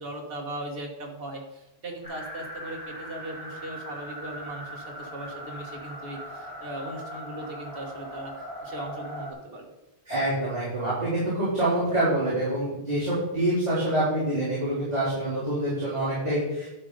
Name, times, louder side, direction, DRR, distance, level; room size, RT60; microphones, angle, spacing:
voice 1, 0.0-9.7, right 1 dB, 65° right, 0 dB, 1.7 m, -38 dB
sound 1, 2.0-9.3, equal, 20° right, 2.6 m, -40 dB
voice 2, 10.1-16.7, right 1 dB, 40° right, -12 dB, 4.3 m, -26 dB
12.0 x 5.1 x 5.2 m, 0.95 s
omnidirectional pair, 1.0 m